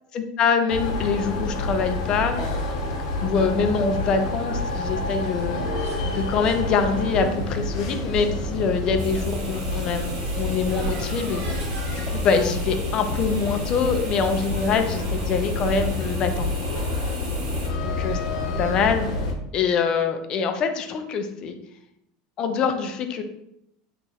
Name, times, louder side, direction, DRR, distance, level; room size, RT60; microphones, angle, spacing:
voice 1, 0.1-2.4 3.2-5.8 6.1-11.6 12.1-16.5 17.8-18.2 18.6-19.1 19.5-21.5 22.4-23.2, left 5 dB, 25° left, 7 dB, 0.3 m, -24 dB
sound 1, 0.7-19.3, left 2 dB, 80° left, 0.7 m, -28 dB
sound 2, 4.9-12.4, right 1 dB, 75° right, 1.3 m, -37 dB
sound 3, 9.0-17.7, right 3 dB, 30° right, 0.6 m, -40 dB
2.9 x 2.4 x 4.1 m, 0.81 s
supercardioid pair, 175°, 3 cm